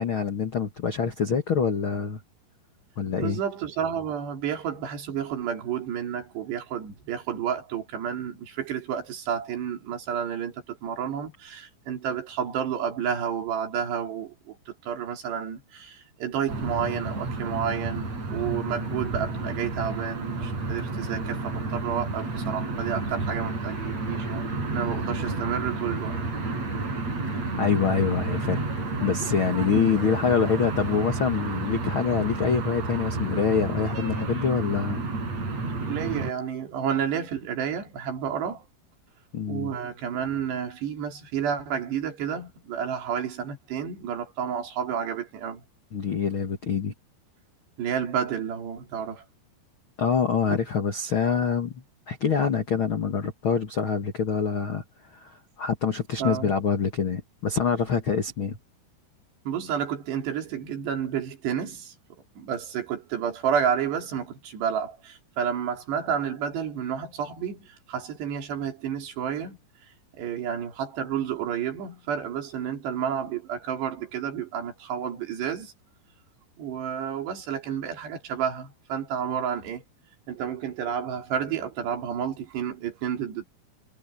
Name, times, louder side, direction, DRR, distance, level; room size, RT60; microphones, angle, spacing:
voice 1, 0.0-2.2 3.0-3.4 27.6-35.0 39.3-39.7 45.9-46.9 50.0-54.8 55.1-58.6, left 6 dB, 65° left, 1.3 m, -26 dB
voice 2, 3.2-26.2 35.8-38.7 39.5-45.6 47.8-49.3 50.5-50.6 56.2-56.5 59.5-61.9 62.4-69.6 70.2-75.7 76.6-79.8 80.3-83.4, right 8 dB, 70° right, 5.4 m, -30 dB
sound 1, 16.5-36.3, right 3 dB, 35° right, 8.8 m, -31 dB
omnidirectional pair, 5.0 m